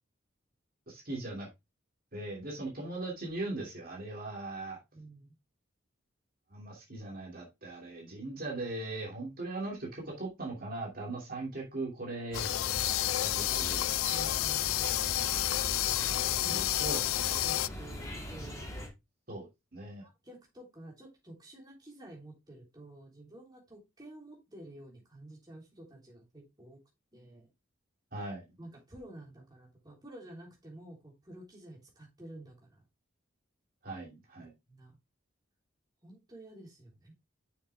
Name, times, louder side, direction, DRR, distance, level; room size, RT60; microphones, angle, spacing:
voice 1, 0.9-1.5 2.1-4.8 6.5-12.5 13.3-13.8 14.1-14.2 16.4-17.0 19.3-20.1 28.1-28.4 33.8-34.5, right 2 dB, 45° right, 2.8 m, -39 dB
voice 2, 4.9-5.3 14.1-15.3 16.1-16.6 17.2-18.7 20.0-26.8 27.1-27.5 28.6-32.8 34.7-35.0 36.0-37.1, right 1 dB, 20° right, 3.3 m, -50 dB
sound 1, 12.3-17.7, left 16 dB, 85° left, 0.3 m, -30 dB
sound 2, 12.3-18.9, equal, 15° left, 2.2 m, -41 dB
6.7 x 6.7 x 3.5 m
head